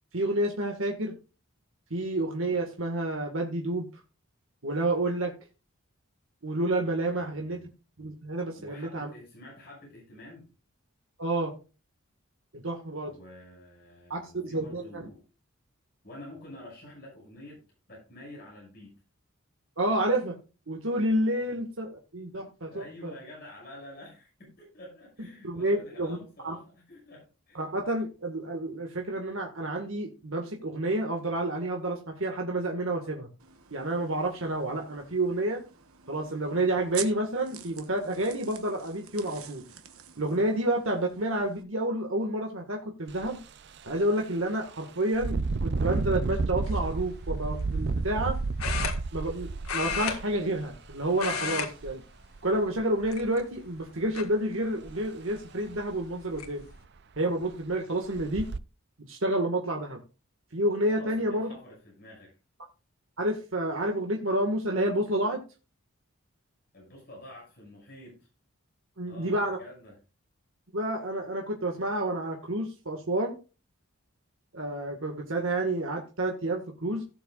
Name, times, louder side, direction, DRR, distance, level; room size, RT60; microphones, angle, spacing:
voice 1, 0.1-1.2 1.9-3.9 4.6-5.3 6.4-7.6 8.0-9.1 11.2-11.5 12.5-13.1 14.1-15.0 19.8-20.4 20.7-23.1 25.4-26.2 26.4-26.6 27.5-33.3 33.7-35.6 36.1-39.6 40.2-43.4 43.8-48.4 49.1-52.0 52.4-56.6 57.2-58.5 59.0-60.0 60.5-61.5 63.2-65.4 69.0-69.6 70.7-73.4 74.5-77.0, right 1 dB, 70° right, 1 dB, 1.9 m, -29 dB
voice 2, 7.1-7.6 8.6-10.5 13.0-15.2 16.0-19.0 21.5-21.6 22.7-27.7 60.9-62.3 66.7-68.3 69.1-69.9, left 1 dB, 45° left, -3 dB, 6.3 m, -48 dB
sound 1, 33.4-41.6, right 9 dB, 85° right, 1.2 m, -46 dB
Engine, 43.1-43.3 43.8-43.9 45.1-50.9 51.8-51.9 52.4-53.1 54.9-55.0 55.4-55.5 55.9-56.0 56.4-56.9 57.4-57.5 58.1-58.6, right 3 dB, 50° right, 0.5 m, -31 dB
sound 2, 46.7-46.9 48.6-49.4 49.6-50.9 51.1-51.7 52.0-52.3 53.0-53.6 54.1-54.2 55.7-55.8 56.1-56.5, left 6 dB, 80° left, 1.8 m, -32 dB
17.5 x 7.2 x 2.5 m, 0.32 s
head